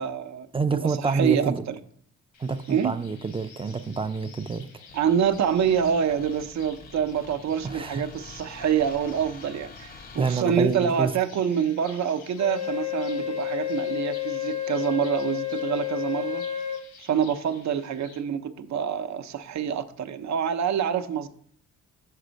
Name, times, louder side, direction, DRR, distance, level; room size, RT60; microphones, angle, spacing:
voice 1, 0.0-0.5 0.7-1.8 2.7-3.0 4.9-16.5 17.0-21.3, right 8 dB, 65° right, 0.6 m, -26 dB
voice 2, 0.5-1.6 2.4-4.7 7.6-8.1 10.2-11.1, right 4 dB, 20° right, 0.4 m, -27 dB
sound 1, 2.3-18.2, left 5 dB, 80° left, 1.2 m, -51 dB
sound 2, 4.9-10.4, left 4 dB, 30° left, 0.6 m, -47 dB
Wind instrument woodwind instrument, 12.4-16.8, left 12 dB, 65° left, 0.8 m, -30 dB
6.5 x 4.3 x 5.1 m
cardioid pair, 85°, 30 cm